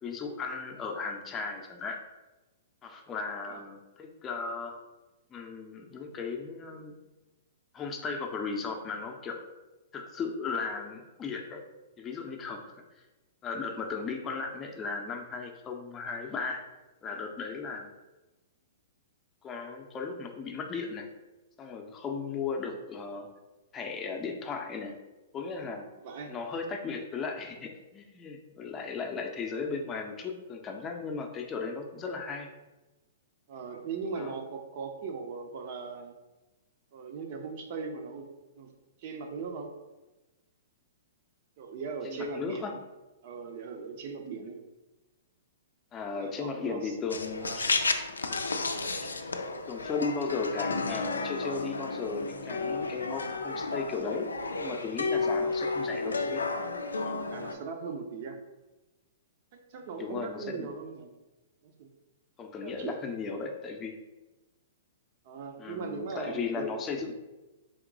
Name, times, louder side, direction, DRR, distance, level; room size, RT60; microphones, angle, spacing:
voice 1, 0.0-2.0 2.8-4.8 5.3-7.0 7.7-9.4 9.9-11.6 12.0-12.8 13.4-16.6 17.0-17.9 19.4-21.1 21.6-23.3 23.7-25.0 25.3-25.9 26.3-32.5 34.2-34.4 42.0-42.7 45.9-47.8 49.0-49.1 49.7-54.3 54.6-56.4 57.0-57.3 60.0-60.7 62.4-64.0 65.6-67.1, left 4 dB, 20° left, 3 dB, 0.6 m, -36 dB
voice 2, 26.0-26.3 33.5-36.1 36.9-38.3 38.5-38.7 39.0-39.7 41.6-42.8 43.2-44.6 46.1-47.0 47.4-47.6 55.2-55.5 57.3-58.4 59.5-61.1 61.6-61.9 62.6-62.9 65.2-66.7 67.0-67.1, right 5 dB, 50° right, 4 dB, 0.7 m, -39 dB
sound 1, 47.1-57.5, left 3 dB, 85° left, 0.4 m, -32 dB
3.6 x 2.9 x 3.8 m, 1.1 s
figure-of-eight pair, 115°, 0 cm